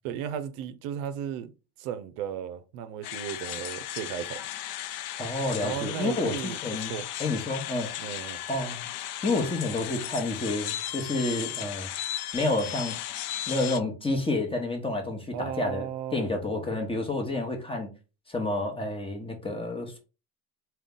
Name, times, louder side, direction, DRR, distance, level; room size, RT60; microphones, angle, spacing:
voice 1, 0.0-1.5 1.8-4.4 5.6-6.6 6.9-7.1 8.0-8.4 15.3-16.3, right 9 dB, 75° right, 0.6 m, -35 dB
sound 1, 3.0-13.8, left 12 dB, 70° left, 0.5 m, -36 dB
voice 2, 5.2-7.9 8.5-8.9 9.2-11.9 12.3-13.0 13.5-17.9 18.3-20.0, left 2 dB, 10° left, 1.0 m, -29 dB
3.7 x 2.3 x 3.6 m
supercardioid pair, 100°, 46 cm